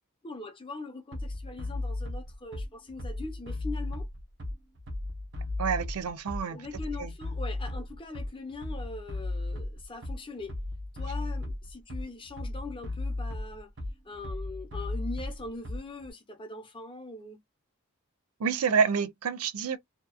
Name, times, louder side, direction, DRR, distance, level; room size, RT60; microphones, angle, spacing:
voice 1, 0.2-4.1 6.5-10.6 10.9-13.7 14.0-17.4, left 2 dB, 25° left, 0.7 m, -41 dB
Bass drum, 1.1-16.1, left 2 dB, 55° right, 1.0 m, -35 dB
voice 2, 5.6-6.6 7.0-7.1 18.4-19.8, right 6 dB, 90° right, 0.5 m, -28 dB
2.9 x 2.3 x 2.3 m
head